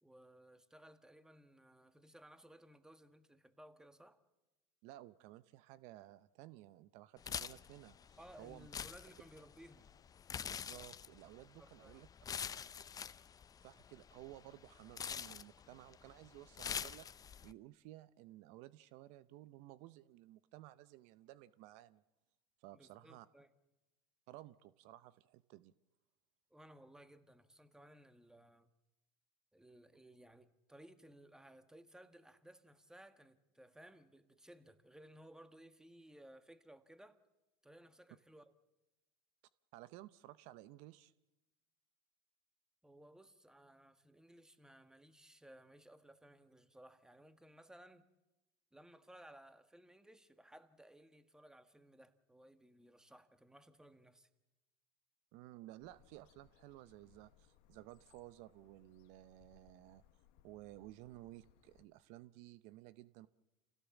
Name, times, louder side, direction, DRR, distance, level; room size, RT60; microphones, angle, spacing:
voice 1, 0.0-4.2 8.2-9.9 11.6-12.0 22.7-23.5 26.5-28.7 29.5-37.2 37.6-38.5 42.8-48.1 48.7-54.3, right 1 dB, 5° right, 1.6 m, -60 dB
voice 2, 4.8-8.7 10.3-12.1 13.6-22.0 22.6-23.3 24.3-25.7 39.7-41.1 55.3-60.0 60.4-63.3, right 16 dB, 65° right, 0.7 m, -56 dB
sound 1, 7.2-17.5, left 7 dB, 30° left, 0.7 m, -46 dB
sound 2, 55.8-61.9, left 11 dB, 65° left, 1.4 m, -70 dB
27.5 x 16.5 x 7.2 m
hypercardioid pair, 90°, 13 cm